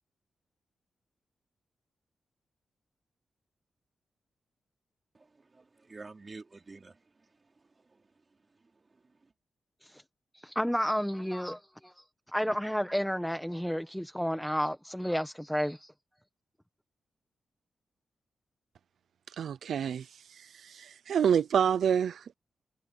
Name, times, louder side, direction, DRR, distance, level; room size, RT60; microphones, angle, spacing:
voice 1, 5.1-9.3, right 3 dB, 35° right, 3.9 m, -52 dB
voice 2, 10.3-11.9 12.3-15.9, equal, ahead, 1.1 m, -31 dB
voice 3, 19.4-20.1 20.6-22.3, right 8 dB, 80° right, 0.5 m, -27 dB
cardioid pair, 85°, 0 cm